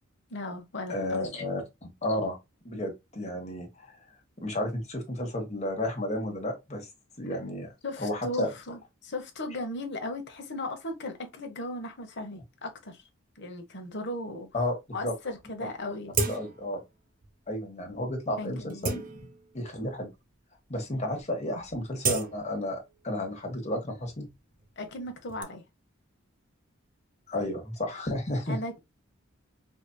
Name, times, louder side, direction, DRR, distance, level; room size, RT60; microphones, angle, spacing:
voice 1, 0.3-1.3 7.8-13.0 13.4-14.5 14.9-16.1 18.4-19.0 24.8-25.6 28.5-28.8, left 1 dB, 60° left, 1.0 m, -37 dB
voice 2, 0.9-2.4 2.6-4.0 4.4-6.9 7.2-7.7 8.0-8.5 14.5-14.8 15.0-15.1 16.3-16.8 17.5-19.2 19.5-20.1 20.7-22.8 23.0-24.3 27.3-28.6, left 1 dB, 35° left, 1.3 m, -32 dB
sound 1, 15.4-15.5 16.1-16.8 17.2-17.3 18.0-18.1 18.6-19.7 20.4-20.5 20.7-21.1 21.4-23.2 23.5-25.4, right 4 dB, 45° right, 0.6 m, -34 dB
4.9 x 2.7 x 2.2 m
head